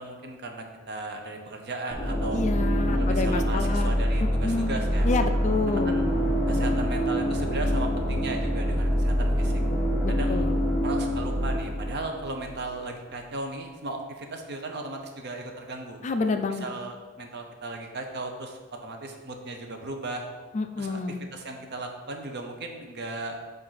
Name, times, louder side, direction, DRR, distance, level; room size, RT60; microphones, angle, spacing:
voice 1, 0.0-2.4 2.9-5.1 5.7-6.1 6.5-9.6 10.1-10.5 10.8-16.0 16.6-20.2 20.8-23.4, right 2 dB, 50° right, 4 dB, 0.7 m, -36 dB
sound 1, 1.9-12.7, equal, ahead, 1.2 m, -25 dB
voice 2, 2.3-3.9 4.2-4.8 5.0-6.0 10.0-10.6 16.0-16.7 20.5-21.2, left 3 dB, 35° left, 7 dB, 0.3 m, -28 dB
7.4 x 2.6 x 5.7 m, 1.3 s
head